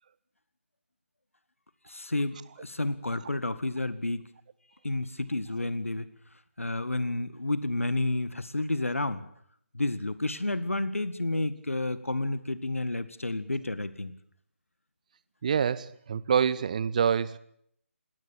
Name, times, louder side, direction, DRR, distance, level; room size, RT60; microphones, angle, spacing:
voice 1, 1.9-4.3 4.8-6.1 6.6-9.3 9.7-14.1, left 2 dB, 75° left, 15 dB, 1.8 m, -30 dB
voice 2, 15.4-17.4, right 7 dB, 35° right, 19 dB, 0.8 m, -26 dB
21.0 x 17.5 x 8.7 m, 0.69 s
figure-of-eight pair, 150°, 7 cm